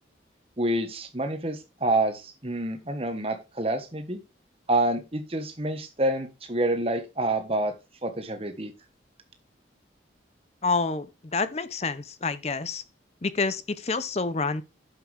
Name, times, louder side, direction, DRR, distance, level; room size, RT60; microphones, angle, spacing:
voice 1, 0.6-4.2 4.7-7.7 8.0-8.7, right 1 dB, 30° right, 1.3 m, -27 dB
voice 2, 10.6-11.1 11.3-12.8 13.2-14.6, left 4 dB, 35° left, 0.6 m, -28 dB
11.0 x 7.4 x 3.4 m
head